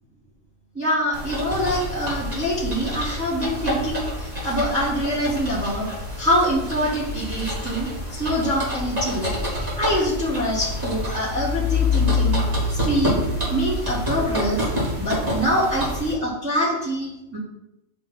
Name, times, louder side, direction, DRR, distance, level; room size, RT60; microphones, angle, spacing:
voice 1, 0.7-5.9 6.2-9.3 9.8-12.4 12.8-13.2 13.5-14.6 15.0-17.4, equal, 10° right, -9 dB, 1.3 m, -24 dB
sound 1, 1.1-16.1, left 2 dB, 35° right, 2.0 m, -27 dB
6.1 x 3.3 x 5.8 m, 0.89 s
omnidirectional pair, 1.2 m